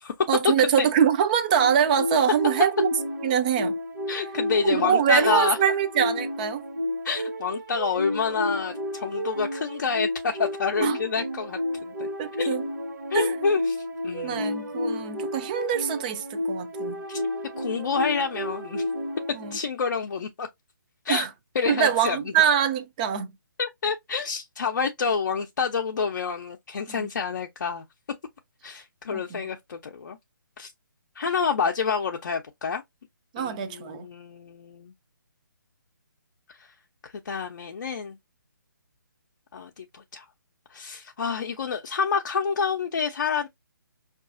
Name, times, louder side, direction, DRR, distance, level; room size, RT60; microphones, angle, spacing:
voice 1, 0.3-2.9 3.2-3.7 4.6-6.6 10.8-11.0 12.2-12.6 13.1-13.5 14.2-17.0 19.3-19.6 21.1-21.3 21.6-23.3 26.9-27.1 29.1-29.4 33.3-34.1, right 8 dB, 25° right, 0.4 m, -24 dB
sound 1, 1.5-19.6, left 1 dB, 60° right, 1.1 m, -31 dB
voice 2, 4.1-5.6 7.0-12.1 12.4-12.5 13.1-14.4 17.1-17.2 17.6-18.9 19.5-20.5 21.0-21.3 21.5-22.3 23.6-27.8 28.6-30.2 30.6-30.7 31.2-32.8 33.4-34.9 36.6-36.7 37.0-38.2 39.5-40.3 40.7-43.5, left 5 dB, 60° left, 0.5 m, -28 dB
4.6 x 2.4 x 2.5 m
figure-of-eight pair, 150°, 11 cm